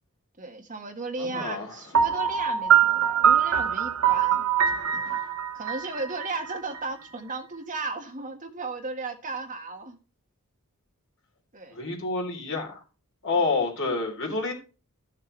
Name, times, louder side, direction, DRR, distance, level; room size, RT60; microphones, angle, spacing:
voice 1, 0.4-4.5 4.9-5.2 5.5-10.0 11.5-11.8 13.4-13.5, right 3 dB, 35° right, 1.7 m, -35 dB
voice 2, 1.2-1.8 4.8-5.0 11.7-12.8 13.2-14.5, left 3 dB, 60° left, 3.6 m, -28 dB
Piano, 1.9-6.8, right 9 dB, 65° right, 0.9 m, -23 dB
13.5 x 6.8 x 3.3 m
head